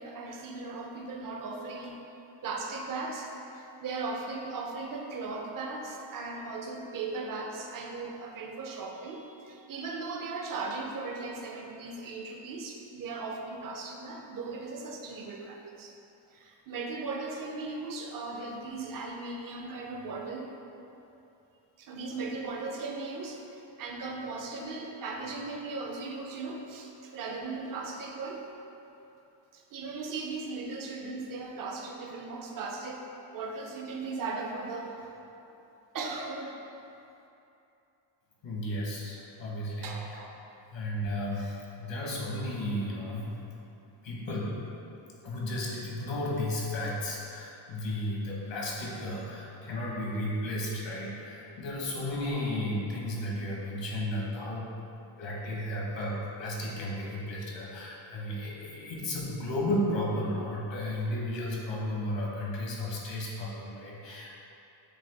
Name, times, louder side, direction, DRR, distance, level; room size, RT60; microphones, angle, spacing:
voice 1, 0.0-2.0 2.4-16.0 16.3-20.6 21.8-28.5 29.5-33.0 33.3-35.1 35.9-36.6 39.8-40.3, right 3 dB, 45° right, 1 dB, 0.6 m, -38 dB
voice 2, 38.4-40.2 40.7-43.4 44.0-44.5 45.2-54.7 55.2-64.3, left 1 dB, 70° left, -4 dB, 1.1 m, -33 dB
6.6 x 2.3 x 3.4 m, 2.8 s
cardioid pair, 115°, 46 cm